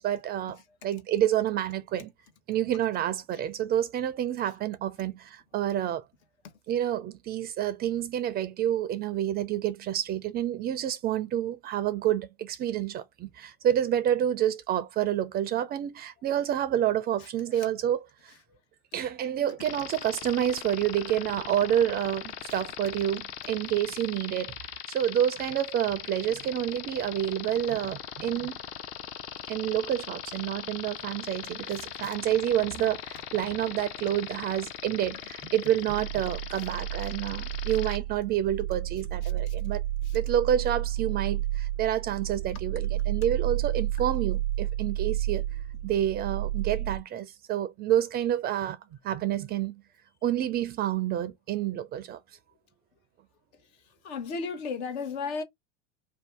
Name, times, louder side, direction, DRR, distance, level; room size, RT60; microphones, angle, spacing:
voice 1, 0.0-2.1 2.5-6.1 6.7-18.3 18.9-24.5 24.9-28.6 29.5-39.8 40.1-45.4 45.8-48.8 49.0-49.8 50.2-52.2, right 11 dB, 30° right, 0.4 m, -28 dB
voice 2, 17.2-17.7 18.5-18.6 31.6-32.2 36.5-36.7 37.0-37.1 39.2-39.5 40.0-40.2 53.8-55.4, left 5 dB, 65° left, 1.0 m, -37 dB
sound 1, 19.6-38.0, left 9 dB, 40° left, 0.6 m, -40 dB
sound 2, 35.9-47.0, right 13 dB, 80° right, 0.5 m, -31 dB
2.6 x 2.2 x 3.3 m
hypercardioid pair, 90°, 35 cm